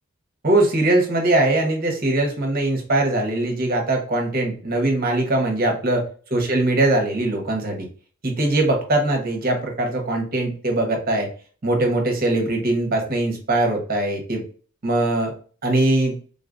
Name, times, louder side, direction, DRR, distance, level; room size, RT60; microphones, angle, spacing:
voice 1, 0.4-7.9 8.2-11.3 11.6-14.4 14.8-15.3 15.6-16.2, right 2 dB, 40° right, 2 dB, 0.9 m, -21 dB
3.7 x 2.4 x 2.5 m, 0.39 s
head